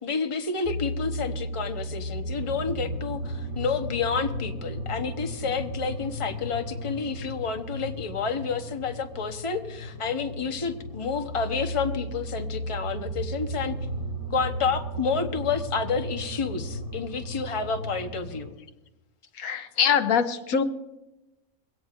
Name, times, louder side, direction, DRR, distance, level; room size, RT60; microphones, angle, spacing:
voice 1, 0.0-13.7 14.3-18.5, left 5 dB, 25° left, 5 dB, 1.0 m, -30 dB
sound 1, 0.6-18.5, equal, 80° right, 4.7 m, -35 dB
voice 2, 19.4-20.6, left 7 dB, 80° left, 9 dB, 1.2 m, -23 dB
22.0 x 17.0 x 2.5 m, 0.99 s
omnidirectional pair, 1.5 m